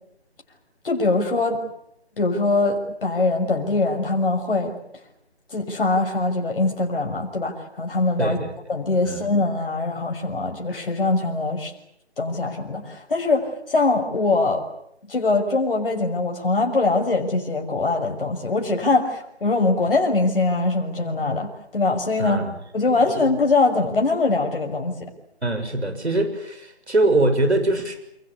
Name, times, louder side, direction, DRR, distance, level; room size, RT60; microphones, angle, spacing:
voice 1, 0.8-1.6 2.2-4.8 5.5-8.4 8.7-11.7 12.2-14.6 15.1-22.5 22.7-25.0, left 3 dB, 55° left, 2 dB, 6.3 m, -22 dB
voice 2, 8.2-8.5 9.0-9.3 22.2-22.5 25.4-28.0, right 2 dB, 80° right, 8 dB, 6.6 m, -22 dB
27.0 x 22.5 x 8.6 m, 0.75 s
figure-of-eight pair, 160°, 33 cm